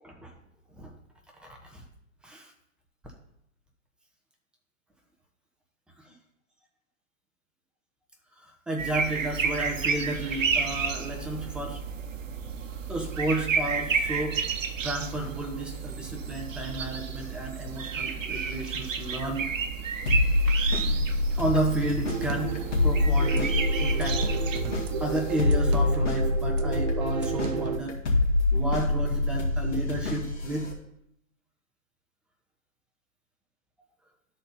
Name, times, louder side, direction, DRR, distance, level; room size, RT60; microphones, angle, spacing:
voice 1, 0.0-0.3 0.8-0.9 1.4-1.8 2.2-2.5 6.1-6.2 8.4-11.8 12.9-14.4 14.8-19.5 20.7-21.1 21.3-24.3 25.0-28.0 28.5-30.7, right 2 dB, ahead, 0 dB, 0.8 m, -32 dB
sound 1, 8.8-25.4, right 5 dB, 75° right, 0.9 m, -32 dB
sound 2, 20.1-30.7, left 2 dB, 65° left, 2.0 m, -26 dB
sound 3, 22.1-27.8, right 7 dB, 35° right, 0.5 m, -33 dB
12.5 x 4.3 x 4.0 m, 0.77 s
hypercardioid pair, 130°, 39 cm